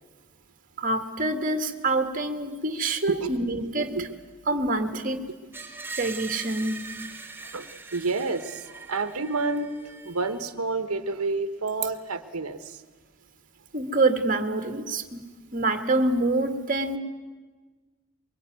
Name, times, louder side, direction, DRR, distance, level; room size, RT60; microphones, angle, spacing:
voice 1, 0.8-4.0 4.5-5.2 5.9-6.8 13.7-15.2 15.5-17.0, right 2 dB, 40° right, 6 dB, 1.8 m, -26 dB
voice 2, 3.1-3.7 4.0-4.1 7.5-9.7 10.0-12.8, right 3 dB, 90° right, 10 dB, 1.3 m, -29 dB
Screech, 5.5-10.5, right 4 dB, 10° right, 1.8 m, -41 dB
23.5 x 23.0 x 9.4 m, 1.4 s
head